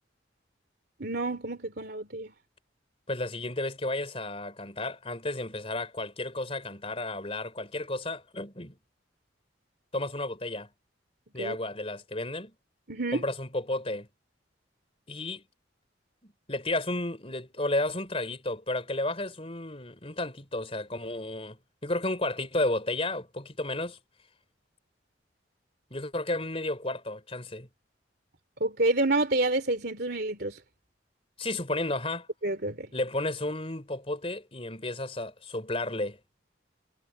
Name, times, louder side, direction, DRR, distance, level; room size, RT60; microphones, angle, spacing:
voice 1, 1.0-2.3 11.4-11.6 12.9-13.2 28.6-30.6 32.4-32.9, right 2 dB, 55° right, 3.1 m, -28 dB
voice 2, 3.1-8.8 9.9-10.7 11.3-12.5 13.1-14.1 15.1-15.4 16.2-24.0 25.9-27.7 31.4-32.3 32.9-36.2, left 2 dB, 30° left, 4.1 m, -32 dB
head